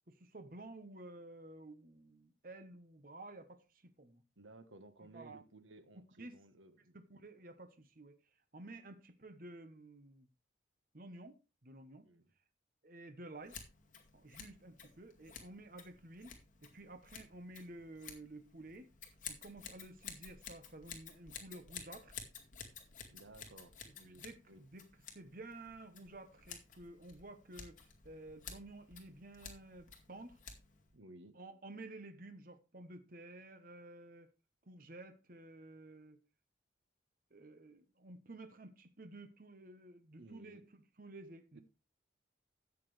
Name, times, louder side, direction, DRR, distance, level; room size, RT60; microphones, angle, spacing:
voice 1, 0.1-4.2 5.0-5.4 6.2-6.3 6.9-8.2 8.5-10.3 10.9-12.0 12.8-13.6 14.1-18.9 19.3-22.1 24.0-24.8 25.1-30.4 31.3-34.3 34.6-36.2 37.3-41.6, right 2 dB, 45° right, 1.1 m, -52 dB
voice 2, 4.4-7.0 12.0-12.3 23.1-24.6 30.9-31.4 40.2-40.6 41.5-41.6, right 2 dB, 85° right, 1.3 m, -57 dB
Scissors, 13.4-30.9, left 6 dB, 40° left, 2.2 m, -53 dB
13.0 x 8.5 x 3.3 m
head